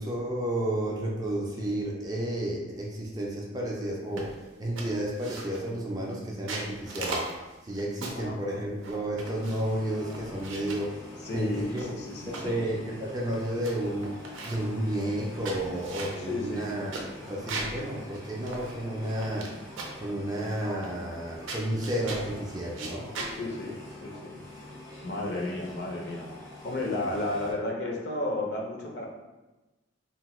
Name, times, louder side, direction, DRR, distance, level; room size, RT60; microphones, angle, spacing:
voice 1, 0.0-11.0 11.3-11.9 12.3-14.1 14.4-16.9 17.3-19.5 20.0-23.1, right 1 dB, 20° right, -3 dB, 0.4 m, -32 dB
sound 1, 4.2-4.4 4.8-5.7 6.3-8.3 8.8-9.7 10.1-10.9 11.5-12.5 13.0-13.1 13.3-13.7 14.0-14.7 15.2-17.8 18.1-18.2 18.5-19.5 19.8-20.1 20.8-21.2 21.5-22.3 22.7-23.3, right 3 dB, 85° right, 0.5 m, -38 dB
voice 2, 8.1-8.6 11.2-12.5 16.1-16.7 23.2-24.4 25.0-26.3 26.6-29.1, left 2 dB, 55° left, -1 dB, 0.5 m, -33 dB
sound 2, 9.2-27.5, left 1 dB, 90° left, 1.1 m, -46 dB
2.8 x 2.1 x 3.0 m, 1.1 s
head